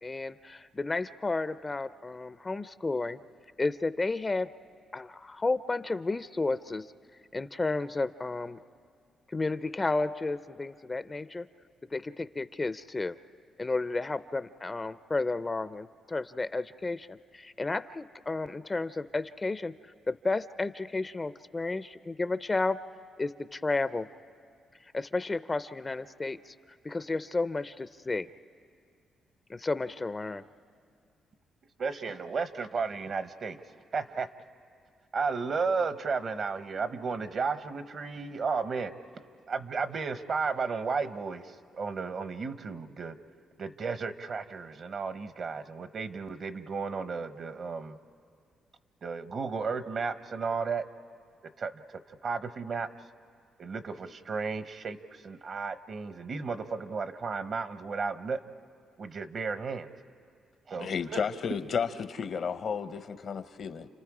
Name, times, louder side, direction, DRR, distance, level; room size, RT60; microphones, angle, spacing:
voice 1, 0.0-3.2 3.6-4.5 4.9-6.9 7.3-8.6 9.3-11.5 11.9-13.2 13.6-19.7 20.1-22.8 23.2-24.1 24.9-26.5 26.8-28.3 29.5-30.4, left 3 dB, 25° left, 0.5 m, -32 dB
voice 2, 31.8-33.6 33.9-34.3 35.1-38.9 39.5-43.2 43.6-48.0 49.0-50.8 51.6-52.9 53.6-58.4 59.0-59.9 60.7-60.9, right 4 dB, 50° right, 1.0 m, -33 dB
voice 3, 60.8-63.9, left 6 dB, 60° left, 0.8 m, -32 dB
30.0 x 29.5 x 4.9 m
cardioid pair, 85°, 0 cm